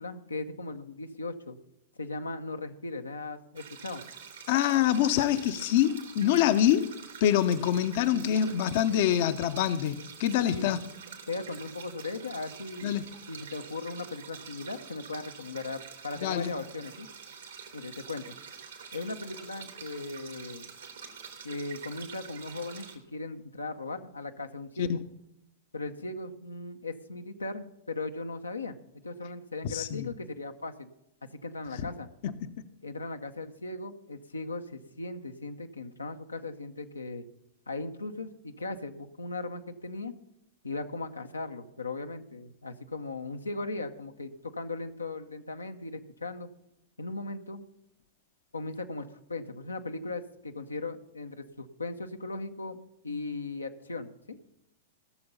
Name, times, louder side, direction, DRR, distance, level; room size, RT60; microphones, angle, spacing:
voice 1, 0.0-1.6 2.0-4.0 10.5-10.7 11.3-17.1 17.7-18.4 18.9-20.7 21.4-25.0 25.7-30.9 31.3-32.1 32.8-37.2 37.7-40.1 40.6-46.5 47.0-47.6 48.5-54.5, left 3 dB, 90° left, 6 dB, 0.8 m, -38 dB
sound 1, 3.6-23.0, right 6 dB, 75° right, 2.4 m, -47 dB
voice 2, 4.5-10.8 12.8-13.0 16.2-16.5 24.8-25.0 29.6-30.1 31.8-31.9 32.2-32.5, left 10 dB, 55° left, 11 dB, 0.7 m, -26 dB
16.5 x 6.9 x 5.5 m, 0.85 s
figure-of-eight pair, 100°, 0 cm